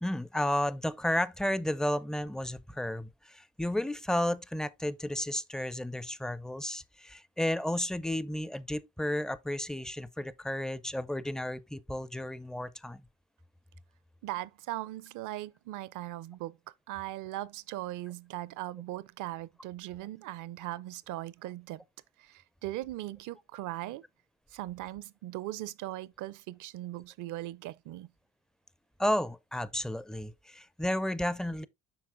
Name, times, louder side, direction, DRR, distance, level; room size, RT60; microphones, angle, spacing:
voice 1, 0.0-13.0 29.0-31.7, left 1 dB, ahead, 0.4 m, -32 dB
voice 2, 14.2-16.6 16.9-21.8 22.2-24.0 24.5-28.1, right 15 dB, 55° right, 0.5 m, -39 dB
7.9 x 5.8 x 2.5 m
hypercardioid pair, 65°, 37 cm